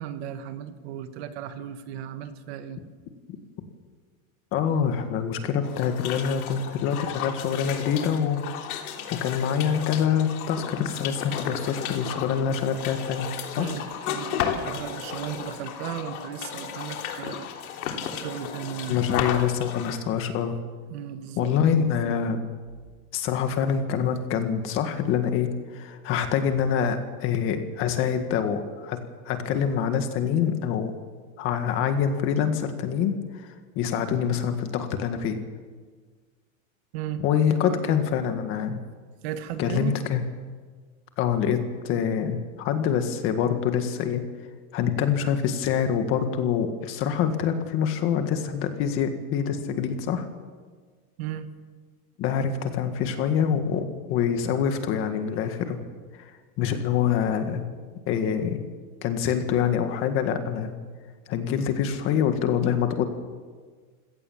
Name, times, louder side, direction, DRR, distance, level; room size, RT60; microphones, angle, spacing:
voice 1, 0.0-2.8 13.6-17.5 18.1-19.0 20.9-22.1 36.9-37.2 37.7-38.0 39.2-39.9 51.2-51.5, right 10 dB, 45° right, 9 dB, 1.5 m, -35 dB
voice 2, 4.5-8.4 9.1-13.3 13.6-13.7 18.9-20.6 21.4-22.4 23.1-29.0 29.3-30.9 31.4-35.4 37.2-38.8 39.6-40.2 41.2-44.2 44.7-50.3 52.2-55.8 56.2-56.3 56.6-57.7 58.1-58.6 59.0-60.7 61.3-63.0, left 8 dB, 30° left, 7 dB, 1.8 m, -25 dB
sound 1, 5.6-20.0, left 8 dB, 90° left, 3.4 m, -34 dB
27.0 x 17.5 x 7.3 m, 1.5 s
supercardioid pair, 180°, 42 cm